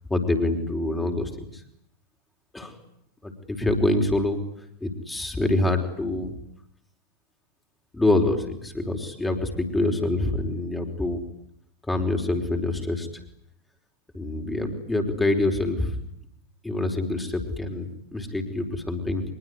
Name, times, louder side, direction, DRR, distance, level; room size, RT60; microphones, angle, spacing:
voice 1, 0.1-1.6 2.5-2.7 3.2-4.4 4.8-6.3 7.9-11.2 11.9-13.1 14.1-16.0 16.6-19.2, left 2 dB, 5° left, 4 dB, 4.8 m, -26 dB
24.5 x 23.0 x 9.8 m, 0.72 s
figure-of-eight pair, 90°, 0 cm